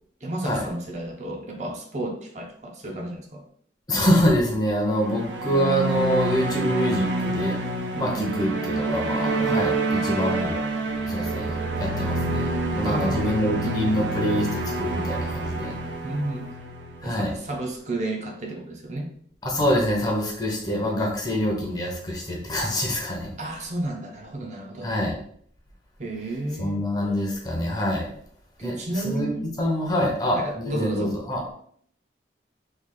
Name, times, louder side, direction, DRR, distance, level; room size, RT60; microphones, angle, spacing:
voice 1, 0.2-3.4 7.9-8.3 12.8-13.2 16.0-16.5 17.0-19.1 23.4-24.9 26.0-26.8 28.6-29.4 30.0-31.2, right 1 dB, 40° right, 1 dB, 0.5 m, -32 dB
voice 2, 3.9-7.6 8.0-10.6 11.0-11.5 11.8-12.5 12.7-15.7 17.0-17.3 19.4-23.3 24.8-25.2 26.6-28.1 28.6-28.7 29.0-29.3 29.6-31.5, equal, 20° left, 0 dB, 0.7 m, -25 dB
sound 1, 4.9-17.4, right 2 dB, 90° right, 0.6 m, -27 dB
3.2 x 2.4 x 3.7 m, 0.63 s
head